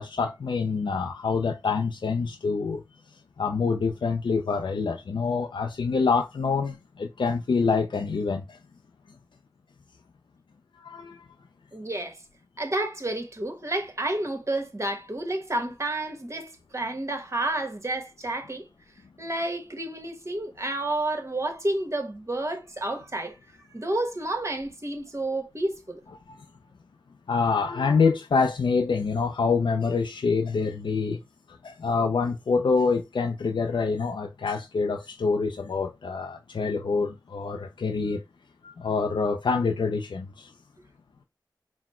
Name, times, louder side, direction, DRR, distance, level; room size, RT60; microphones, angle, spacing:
voice 1, 0.0-2.8 3.4-8.6 10.8-11.3 27.3-31.2 31.6-38.2 38.6-40.5, left 4 dB, 90° left, 0.4 m, -26 dB
voice 2, 11.7-12.2 12.6-18.7 19.2-23.4 23.7-26.0, right 2 dB, 35° right, 1.2 m, -30 dB
4.1 x 2.1 x 4.2 m
cardioid pair, 40°, 8 cm